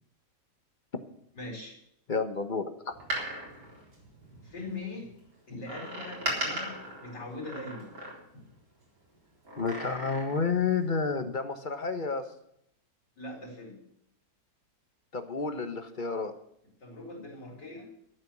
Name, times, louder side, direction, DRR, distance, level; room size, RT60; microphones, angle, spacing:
voice 1, 1.3-1.8 4.4-5.1 5.5-7.9 13.2-13.8 16.8-17.9, left 2 dB, 80° left, -3 dB, 4.8 m, -41 dB
voice 2, 2.1-2.9 9.6-12.3 15.1-16.3, left 5 dB, 30° left, 9 dB, 1.1 m, -30 dB
Door, 2.9-4.7 5.6-8.5 9.4-10.6 10.9-11.0, right 1 dB, 70° right, 4.6 m, -37 dB
12.5 x 8.8 x 7.3 m, 0.73 s
omnidirectional pair, 1.9 m